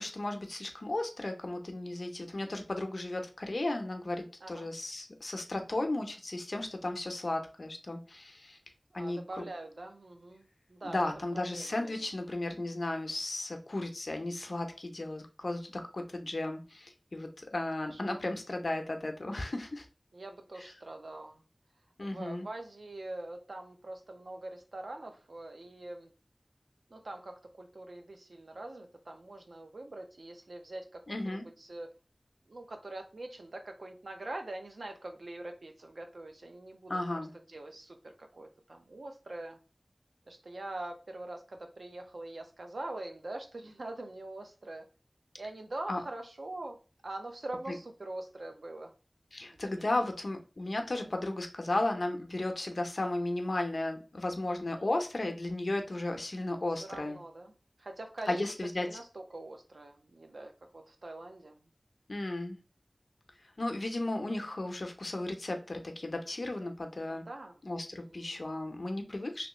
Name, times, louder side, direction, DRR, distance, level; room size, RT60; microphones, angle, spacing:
voice 1, 0.0-8.6 8.9-9.5 10.8-19.9 20.6-20.7 22.0-22.5 31.1-31.5 36.9-37.3 45.9-46.0 47.7-47.8 49.3-57.2 58.3-59.0 62.1-62.6 63.6-67.3 67.6-69.5, left 2 dB, 65° left, 4 dB, 0.6 m, -35 dB
voice 2, 8.9-11.1 11.3-11.7 17.9-18.2 20.1-21.4 22.1-26.1 26.9-31.9 32.5-37.0 37.3-39.6 40.3-44.9 45.4-46.8 47.0-48.9 49.6-50.0 54.5-54.9 56.8-57.5 57.8-58.4 58.8-61.6 67.3-67.5 67.9-68.3, right 2 dB, 85° right, 4 dB, 0.6 m, -43 dB
3.1 x 2.9 x 2.9 m, 0.33 s
wide cardioid pair, 60°, 0 cm